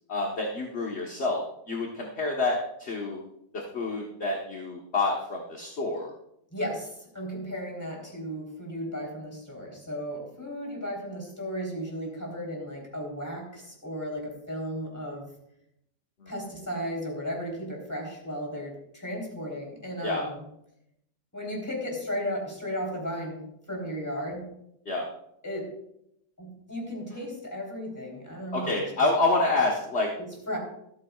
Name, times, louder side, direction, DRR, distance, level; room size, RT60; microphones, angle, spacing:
voice 1, 0.1-3.2 3.5-6.1 16.2-16.3 20.0-20.2 24.9-25.1 28.5-30.1, left 2 dB, 40° left, 0 dB, 1.3 m, -28 dB
voice 2, 6.5-15.3 16.3-20.4 21.3-24.5 25.4-25.7 26.4-28.9 30.5-30.6, equal, 10° left, -1 dB, 3.5 m, -35 dB
13.5 x 13.5 x 2.4 m, 0.76 s
omnidirectional pair, 2.0 m